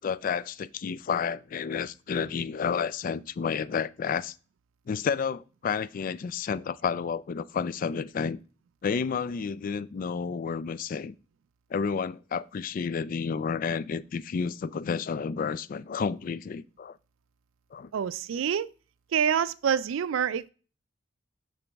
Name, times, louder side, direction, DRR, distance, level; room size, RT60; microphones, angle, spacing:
voice 1, 0.0-4.3 4.9-8.4 8.8-11.1 11.7-17.0 17.7-17.9, left 6 dB, 45° left, 0.3 m, -31 dB
voice 2, 17.9-18.7 19.1-20.5, right 8 dB, 75° right, 0.4 m, -27 dB
6.8 x 6.1 x 3.4 m
head